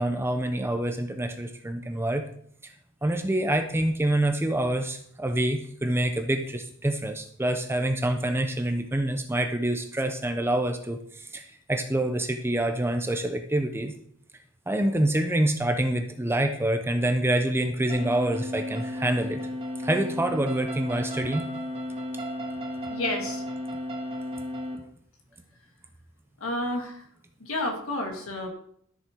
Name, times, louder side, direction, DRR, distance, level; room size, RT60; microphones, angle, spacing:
voice 1, 0.0-2.3 2.6-2.7 3.0-13.9 14.7-19.5 19.8-21.5, right 1 dB, 10° right, 6 dB, 0.7 m, -26 dB
sound 1, 17.9-24.8, left 1 dB, 30° right, 2.1 m, -34 dB
voice 2, 22.9-23.4 26.4-27.0 27.4-28.5, left 1 dB, 70° left, 2 dB, 2.2 m, -30 dB
12.5 x 7.1 x 4.6 m, 0.64 s
head